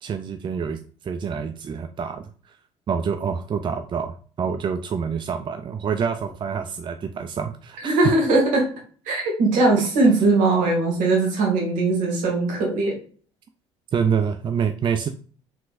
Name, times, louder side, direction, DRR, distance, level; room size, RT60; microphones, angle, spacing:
voice 1, 0.0-2.6 2.9-8.1 13.9-15.1, right 6 dB, 35° right, 7 dB, 0.4 m, -27 dB
voice 2, 7.8-8.6 9.1-13.0, right 2 dB, 65° right, -1 dB, 2.0 m, -20 dB
4.7 x 3.8 x 2.5 m, 0.42 s
hypercardioid pair, 60°, 15 cm